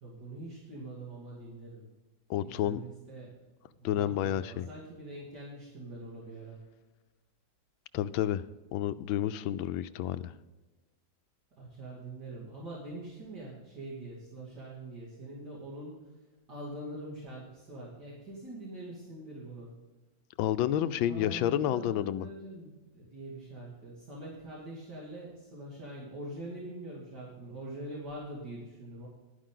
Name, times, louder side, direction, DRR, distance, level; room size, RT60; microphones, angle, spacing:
voice 1, 0.0-1.9 2.4-3.3 3.7-6.6 11.6-16.1 16.5-19.8 21.1-29.1, right 1 dB, 60° right, -6 dB, 3.1 m, -44 dB
voice 2, 2.3-2.8 3.8-4.7 7.9-10.3 20.4-22.3, left 11 dB, 90° left, 14 dB, 1.4 m, -30 dB
11.5 x 10.0 x 3.8 m, 1.2 s
omnidirectional pair, 2.1 m